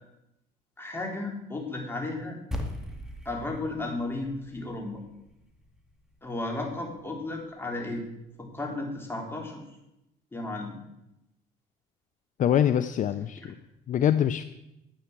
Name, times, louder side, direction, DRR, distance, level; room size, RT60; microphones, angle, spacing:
voice 1, 0.8-2.4 3.3-5.0 6.2-8.0 8.4-9.8 10.3-10.8 13.4-13.5, left 2 dB, 15° left, 0 dB, 3.8 m, -34 dB
sound 1, 2.5-7.0, left 1 dB, 5° right, 2.3 m, -40 dB
voice 2, 12.4-13.5 13.9-14.4, left 10 dB, 50° left, 12 dB, 0.6 m, -24 dB
11.5 x 8.6 x 7.4 m, 0.88 s
cardioid pair, 110°, 17 cm